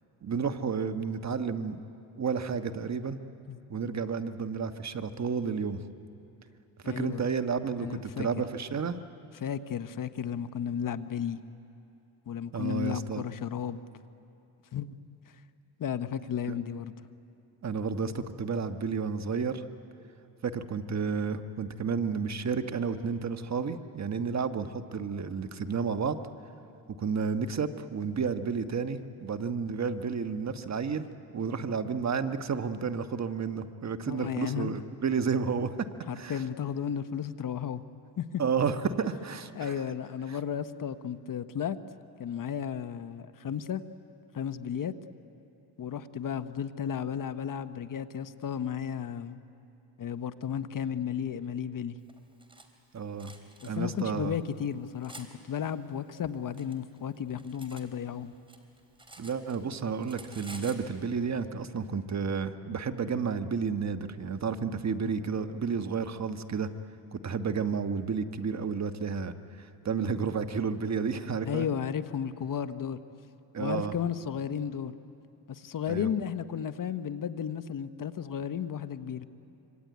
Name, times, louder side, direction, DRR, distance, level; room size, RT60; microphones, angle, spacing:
voice 1, 0.2-1.8 2.2-3.2 3.7-5.8 6.8-9.0 12.5-13.2 16.5-16.6 17.6-19.6 20.4-26.2 27.0-31.0 31.3-35.7 36.1-36.4 38.4-39.7 52.9-53.3 53.6-54.4 59.2-66.7 67.1-71.7 73.5-73.9 75.9-76.1, right 5 dB, 40° right, 8 dB, 1.3 m, -31 dB
voice 2, 6.8-7.3 7.8-8.3 9.4-11.4 12.3-13.8 14.7-14.9 15.8-16.9 34.1-34.7 36.1-37.8 38.2-38.4 39.5-41.8 42.2-43.8 44.3-44.9 45.8-49.4 50.0-52.0 53.6-58.3 71.5-73.0 73.6-74.9 75.5-79.3, left 8 dB, 50° left, 12 dB, 1.1 m, -33 dB
Cutlery silverware, 52.1-52.7 53.2-53.7 54.4-55.3 56.2-57.9 58.2-59.7 60.0-60.9, right 1 dB, 10° right, 3.7 m, -50 dB
25.5 x 25.0 x 9.4 m, 2.8 s
cardioid pair, 85°, 43 cm